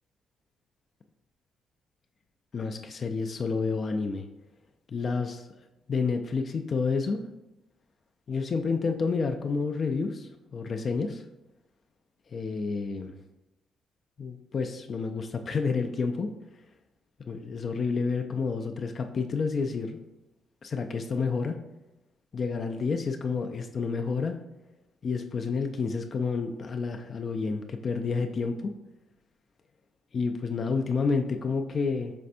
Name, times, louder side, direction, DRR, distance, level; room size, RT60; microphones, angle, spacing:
voice 1, 2.5-4.3 4.9-5.5 5.9-7.2 8.3-11.2 12.3-13.1 14.2-16.3 17.3-20.0 20.6-21.6 22.3-24.4 25.0-28.7 30.1-32.1, left 4 dB, 45° left, 5 dB, 0.3 m, -29 dB
5.3 x 3.3 x 2.5 m, 0.97 s
cardioid pair, 90°, 0 cm